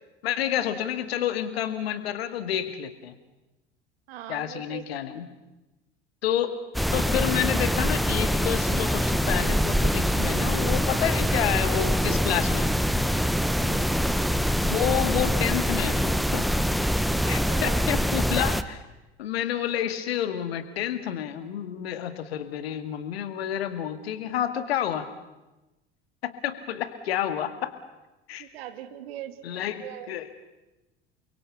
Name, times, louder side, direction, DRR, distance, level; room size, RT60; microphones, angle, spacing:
voice 1, 0.2-3.2 4.3-5.3 6.2-6.6 6.9-12.8 14.6-16.5 17.3-18.8 19.2-25.1 26.2-27.7 28.3-28.5 29.4-30.3, left 10 dB, 70° left, 10 dB, 2.2 m, -29 dB
voice 2, 4.1-4.8 13.5-13.9 17.2-17.9 28.4-30.1, right 12 dB, 65° right, 10 dB, 2.0 m, -40 dB
sound 1, 6.7-18.6, equal, ahead, 1.1 m, -24 dB
29.0 x 23.0 x 7.1 m, 1.0 s
figure-of-eight pair, 65°, 32 cm